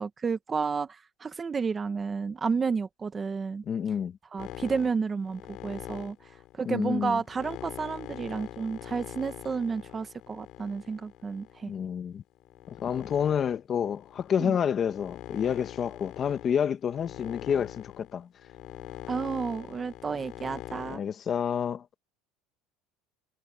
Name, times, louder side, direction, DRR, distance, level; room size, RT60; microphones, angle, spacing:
voice 1, 0.0-3.6 4.3-6.2 6.6-11.7 14.4-14.6 19.1-21.0, right 5 dB, 20° right, 1.3 m, -31 dB
voice 2, 3.6-4.2 6.6-7.2 11.7-12.2 12.7-18.3 20.9-21.8, left 8 dB, 30° left, 1.6 m, -29 dB
sound 1, 4.4-11.8 12.4-21.0, left 15 dB, 50° left, 5.4 m, -43 dB
cardioid pair, 145°, 0 cm